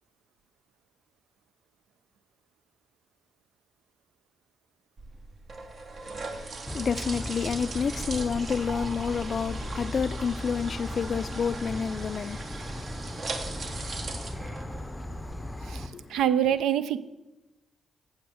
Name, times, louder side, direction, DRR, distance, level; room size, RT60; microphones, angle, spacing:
sound 1, 5.0-15.3, right 3 dB, 55° right, 1.1 m, -39 dB
voice 1, 6.7-16.2, left 6 dB, 55° left, 0.3 m, -31 dB
Insect / Frog, 6.7-15.9, left 1 dB, 5° left, 0.6 m, -37 dB
voice 2, 15.7-17.0, right 10 dB, 85° right, 0.4 m, -25 dB
7.9 x 5.8 x 6.2 m
supercardioid pair, 55°, 0 cm